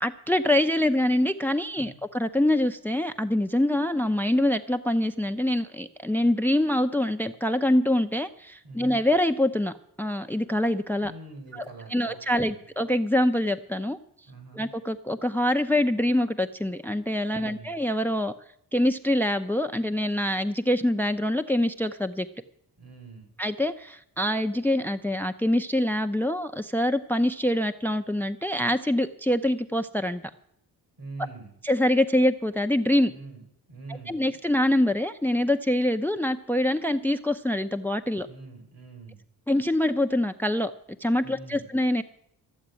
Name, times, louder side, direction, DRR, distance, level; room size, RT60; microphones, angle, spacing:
voice 1, 0.0-11.1 11.5-11.7 11.9-14.0 14.6-18.3 18.7-22.3 23.4-30.2 31.6-33.1 34.1-38.3 39.5-40.7 41.0-42.0, left 1 dB, 5° left, 10 dB, 0.6 m, -25 dB
voice 2, 8.6-9.0 11.0-12.7 14.3-14.7 17.3-17.8 22.8-23.3 31.0-31.5 33.1-33.4 33.7-34.4 38.1-39.2 41.2-41.7, right 3 dB, 65° right, 5 dB, 5.2 m, -44 dB
14.0 x 7.3 x 9.7 m, 0.73 s
cardioid pair, 75°, 39 cm